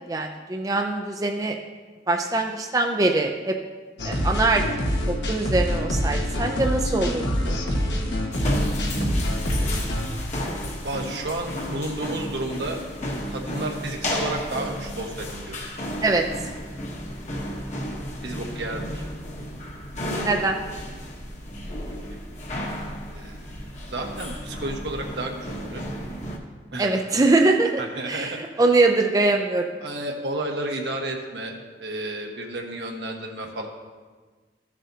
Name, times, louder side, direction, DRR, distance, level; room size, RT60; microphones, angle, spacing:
voice 1, 0.1-1.6 2.1-3.5 4.0-4.6 5.1-7.6 16.0-16.2 20.2-20.6 26.8-27.7 28.1-29.7, right 2 dB, 20° right, 2 dB, 0.4 m, -22 dB
sound 1, 4.0-10.1, equal, 80° left, 1.4 m, -25 dB
sound 2, 8.3-26.4, equal, 40° left, 1.1 m, -32 dB
voice 2, 10.8-12.8 13.3-15.6 18.2-19.0 23.1-23.5 23.9-25.9 26.7-27.0 27.8-28.7 29.8-31.5 31.8-33.7, right 2 dB, 75° right, 1 dB, 1.3 m, -32 dB
14.0 x 7.4 x 2.8 m, 1.4 s
head